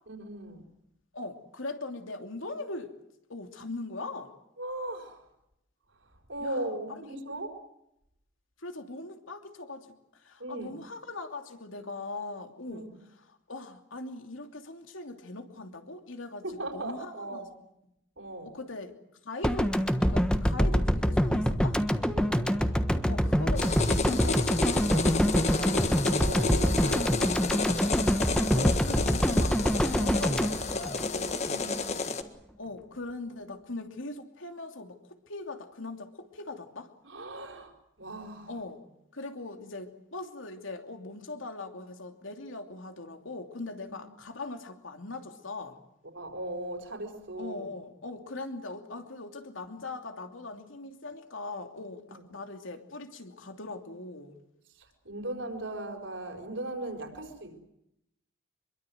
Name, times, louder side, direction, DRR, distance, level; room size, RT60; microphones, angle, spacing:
voice 1, 0.1-0.7 4.6-5.3 6.0-7.5 10.4-10.7 12.7-12.9 16.4-17.4 18.2-18.6 22.1-22.8 26.1-27.8 31.4-32.1 37.0-38.5 46.1-47.7 52.1-52.2 54.7-57.6, right 1 dB, 65° right, 4 dB, 4.9 m, -38 dB
voice 2, 1.1-2.9 3.3-4.3 6.4-6.7 8.6-12.9 13.2-16.4 16.7-17.5 18.4-21.8 23.1-26.0 28.5-31.5 32.6-36.9 38.5-38.8 39.1-45.8 47.4-54.4, left 2 dB, 75° left, 6 dB, 2.8 m, -40 dB
sound 1, 19.4-31.6, equal, 5° left, 1.3 m, -26 dB
sound 2, 23.6-32.2, left 3 dB, 35° left, 1.6 m, -31 dB
25.5 x 23.0 x 7.9 m, 0.81 s
head